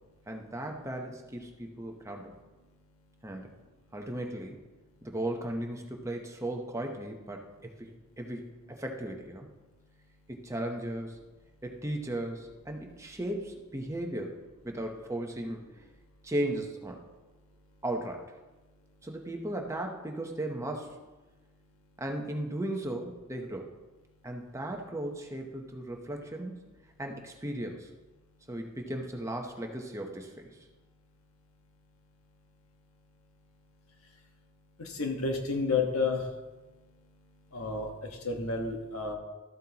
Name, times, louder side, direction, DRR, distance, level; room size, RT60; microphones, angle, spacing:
voice 1, 0.3-2.3 3.2-3.5 3.9-4.6 5.0-7.9 8.2-9.5 10.3-11.2 11.6-14.4 14.6-15.6 16.2-17.0 17.8-18.4 19.0-21.0 22.0-23.7 24.2-26.6 27.0-27.9 28.5-30.7, right 1 dB, 15° right, 2 dB, 0.8 m, -36 dB
voice 2, 34.8-36.2 37.5-39.1, left 4 dB, 85° left, 3 dB, 1.3 m, -31 dB
13.5 x 7.8 x 2.9 m, 1.2 s
head